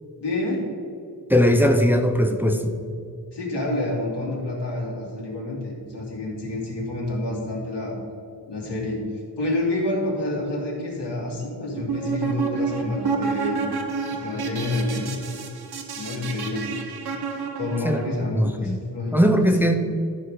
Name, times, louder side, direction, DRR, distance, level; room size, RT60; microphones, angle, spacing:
voice 1, 0.2-0.7 3.3-8.0 8.5-9.0 9.4-13.6 14.1-15.2 16.0-16.7 17.6-19.8, left 2 dB, 70° left, -3 dB, 2.6 m, -28 dB
voice 2, 1.3-2.7 17.8-18.0 18.3-18.8 19.1-19.8, equal, 5° right, 4 dB, 0.7 m, -19 dB
sound 1, 11.7-18.1, right 5 dB, 60° right, 1.1 m, -29 dB
12.5 x 5.6 x 4.9 m, 2.4 s
cardioid pair, 85°, 43 cm